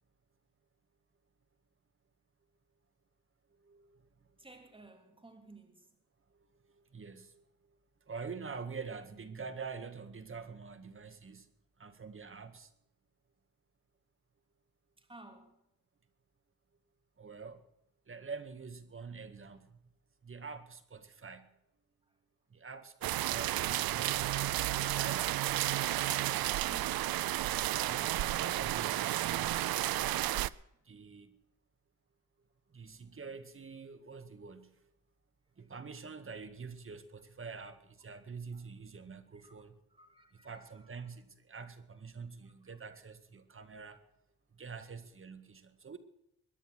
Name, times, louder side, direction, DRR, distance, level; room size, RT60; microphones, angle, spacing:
voice 1, 4.4-6.0 15.0-15.6 21.3-21.4 22.0-22.1 30.6-31.1 35.5-35.7 38.5-38.6 39.3-41.0 42.4-42.8, right 2 dB, 15° right, 3.1 m, -57 dB
voice 2, 6.9-7.4 8.1-11.5 11.8-12.7 17.2-17.6 18.1-19.8 20.2-21.5 22.5-25.4 27.9-29.9 30.9-31.3 32.7-34.7 35.6-39.7 40.4-44.0 44.5-46.0, right 5 dB, 35° right, 2.0 m, -46 dB
sound 1, 23.0-30.5, right 15 dB, 80° right, 0.6 m, -32 dB
22.5 x 10.0 x 6.3 m
cardioid pair, 100°, 35 cm